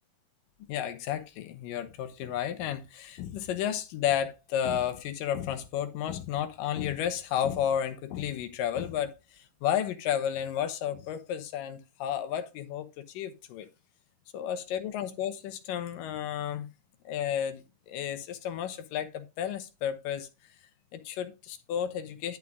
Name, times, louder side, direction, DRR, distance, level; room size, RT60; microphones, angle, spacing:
voice 1, 0.7-13.7 14.3-16.7 17.1-20.3 20.9-22.4, left 9 dB, 80° left, 2.5 m, -32 dB
11.0 x 5.6 x 3.6 m
omnidirectional pair, 3.9 m